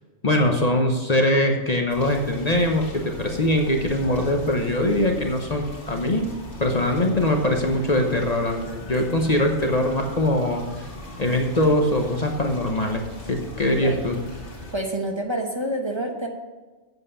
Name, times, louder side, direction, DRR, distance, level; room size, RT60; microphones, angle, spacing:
voice 1, 0.2-6.3 6.6-10.6 11.2-13.0 13.3-14.2, left 1 dB, 35° left, 2 dB, 1.0 m, -22 dB
sound 1, 1.9-14.8, left 1 dB, 90° left, 2.3 m, -39 dB
voice 2, 14.7-16.3, right 1 dB, 25° right, 1 dB, 1.1 m, -27 dB
7.9 x 7.6 x 6.6 m, 1.3 s
omnidirectional pair, 1.2 m